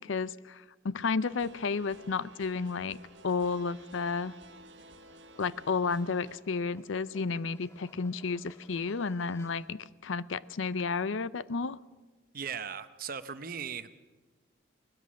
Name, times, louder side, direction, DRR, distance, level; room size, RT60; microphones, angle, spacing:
voice 1, 0.0-3.0 3.2-4.4 5.4-11.8, left 4 dB, 75° left, 18 dB, 0.6 m, -32 dB
sound 1, 1.2-6.4, right 2 dB, 60° right, 1.3 m, -54 dB
sound 2, 1.8-9.9, left 1 dB, 15° left, 2.1 m, -62 dB
voice 2, 12.3-14.0, right 7 dB, 45° right, 12 dB, 0.8 m, -38 dB
21.0 x 20.5 x 6.4 m, 1.2 s
head